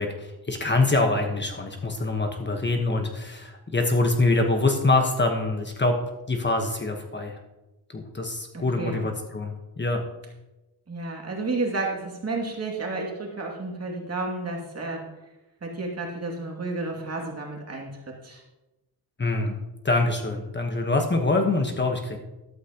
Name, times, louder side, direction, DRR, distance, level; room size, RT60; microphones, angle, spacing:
voice 1, 0.0-6.0 6.3-7.4 7.9-10.0 19.2-19.6 19.8-22.2, left 2 dB, 30° left, 3 dB, 1.2 m, -25 dB
voice 2, 8.5-9.0 10.9-15.1 15.6-18.4, right 3 dB, 40° right, 0 dB, 2.5 m, -31 dB
13.0 x 12.0 x 2.9 m, 1.0 s
wide cardioid pair, 110°, 37 cm